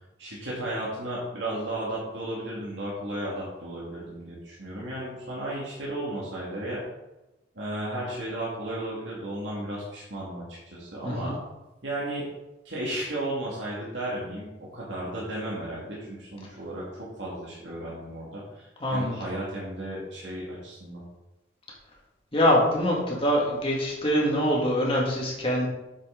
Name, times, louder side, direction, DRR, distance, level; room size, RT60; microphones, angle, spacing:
voice 1, 0.2-6.8 7.6-11.3 11.8-12.2 12.6-16.8 17.2-21.0, right 1 dB, 75° right, -5 dB, 2.1 m, -34 dB
voice 2, 11.0-11.3 18.8-19.2 22.3-25.7, equal, 30° left, -3 dB, 2.2 m, -24 dB
7.9 x 7.6 x 3.9 m, 1.0 s
head